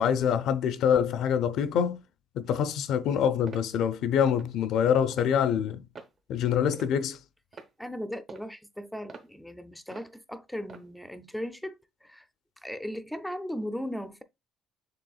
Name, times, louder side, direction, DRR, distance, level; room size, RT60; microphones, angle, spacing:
voice 1, 0.0-2.0 2.3-5.8 6.3-7.2, left 8 dB, 65° left, 0.5 m, -25 dB
sound 1, 3.5-3.7 4.3-4.5 5.1-5.3 5.9-6.2 6.7-7.1 7.5-7.7 8.3-8.5 9.1-9.3 9.9-10.1 10.7-10.9, right 4 dB, 40° right, 0.8 m, -45 dB
voice 2, 7.8-12.3 12.6-14.2, equal, ahead, 0.4 m, -37 dB
6.8 x 3.4 x 2.3 m
cardioid pair, 130°, 0 cm